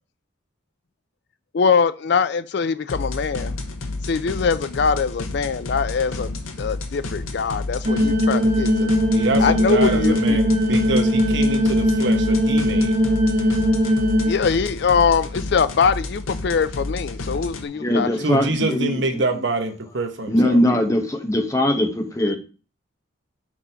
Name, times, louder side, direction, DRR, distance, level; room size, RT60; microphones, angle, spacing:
voice 1, 1.5-3.6 4.0-8.9 9.4-10.4 10.7-10.8 14.2-18.3, left 5 dB, 55° left, 0.4 m, -22 dB
sound 1, 2.9-17.6, left 2 dB, 85° left, 0.9 m, -31 dB
sound 2, 7.9-14.3, equal, 35° right, 0.8 m, -19 dB
voice 2, 9.1-12.9 18.2-20.6, right 2 dB, 60° right, 0.9 m, -26 dB
voice 3, 17.8-19.2 20.3-22.4, left 1 dB, 15° left, 0.8 m, -21 dB
6.1 x 4.1 x 4.4 m
head